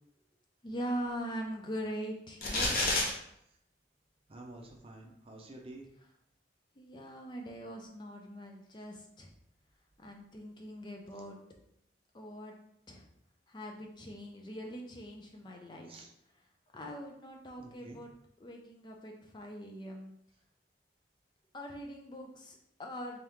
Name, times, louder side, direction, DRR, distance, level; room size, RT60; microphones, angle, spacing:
voice 1, 0.6-2.8 6.0-6.1 6.8-9.3 10.0-11.4 12.1-12.5 12.9-13.1 13.5-16.1 16.7-18.1 18.4-20.1 21.5-23.2, equal, 25° left, 1 dB, 0.4 m, -42 dB
sound 1, 2.4-3.1, left 2 dB, 55° left, 0.8 m, -29 dB
voice 2, 4.3-5.8 15.9-16.1 17.6-18.0, right 2 dB, 30° right, 1 dB, 0.6 m, -49 dB
3.5 x 2.9 x 3.5 m, 0.75 s
head